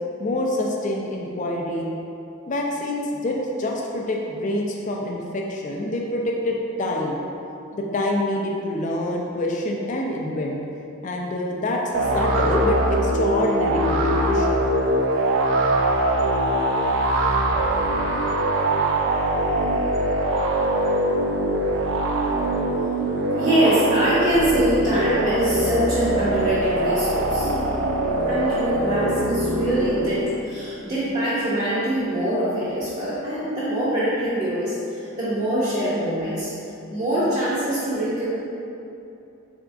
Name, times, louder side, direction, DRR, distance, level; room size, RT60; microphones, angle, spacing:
voice 1, 0.2-1.9 2.5-7.2 7.7-10.6 11.0-14.6, left 1 dB, 40° left, -1 dB, 0.4 m, -26 dB
sound 1, 11.9-30.4, right 1 dB, 70° right, 0.4 m, -22 dB
voice 2, 23.3-27.5 28.3-36.5 36.9-38.3, right 1 dB, 30° right, -11 dB, 0.6 m, -23 dB
3.8 x 3.5 x 2.5 m, 2.7 s
head